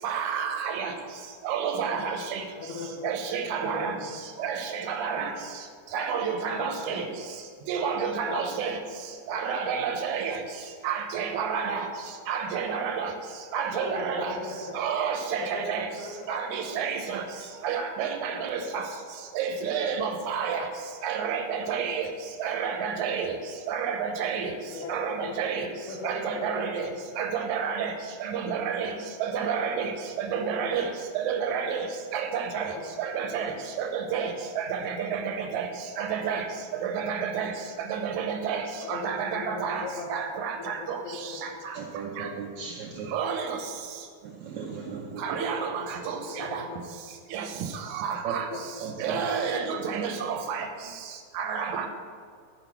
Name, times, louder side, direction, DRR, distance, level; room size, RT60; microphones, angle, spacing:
voice 1, 0.0-0.9 1.4-2.4 3.0-4.0 4.4-5.3 5.9-7.1 7.7-8.8 9.3-10.4 10.8-11.9 12.3-13.1 13.5-14.4 14.7-15.9 16.3-17.2 17.6-18.8 19.4-20.7 21.0-22.1 22.4-23.4 23.7-24.5 24.9-25.7 26.0-26.9 27.2-27.9 28.2-28.9 29.2-29.9 30.2-31.9 32.1-32.7 33.0-33.5 33.8-35.7 36.0-36.4 36.8-37.5 37.8-39.8 40.1-41.0 41.4-41.8 42.2-42.3 43.1-43.6 45.2-46.6 47.3-47.5 47.9-48.5 49.0-50.7 51.4-51.9, right 7 dB, 70° right, 4 dB, 1.9 m, -30 dB
voice 2, 2.6-3.1 3.6-3.9 6.5-7.0 8.3-8.6 13.8-14.6 15.4-15.6 16.0-16.3 16.6-16.7 17.4-17.5 18.6-18.7 23.1-23.2 24.7-24.9 25.2-26.9 30.7-30.9 32.7-32.8 38.9-40.1 40.6-40.7 41.0-41.5 45.6-45.7 46.2-46.8 48.5-48.8 49.2-49.3, left 3 dB, 70° left, -1 dB, 3.0 m, -38 dB
voice 3, 41.7-43.1 44.2-45.2 47.5-47.7 48.2-48.3 48.8-49.2, right 6 dB, 85° right, -1 dB, 1.6 m, -36 dB
13.0 x 4.9 x 6.0 m, 2.1 s
omnidirectional pair, 4.4 m